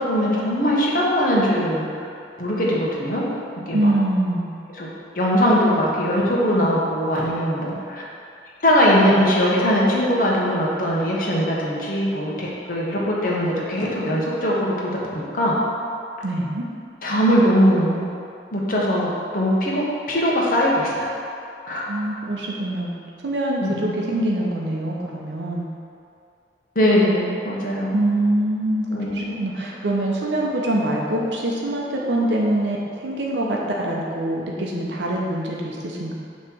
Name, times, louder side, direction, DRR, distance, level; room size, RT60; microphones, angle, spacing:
voice 1, 0.0-1.9 2.4-3.3 3.7-3.9 4.7-4.9 5.1-8.0 8.6-15.6 17.0-18.0 18.5-21.1 21.7-21.9 23.6-24.0 26.7-28.0 28.9-29.4, equal, 50° left, -4 dB, 1.3 m, -21 dB
voice 2, 3.7-4.5 16.2-16.6 21.9-22.9 23.2-25.6 27.9-32.8 33.0-36.1, right 1 dB, 85° right, -2 dB, 0.8 m, -24 dB
7.4 x 3.2 x 6.3 m, 2.5 s
head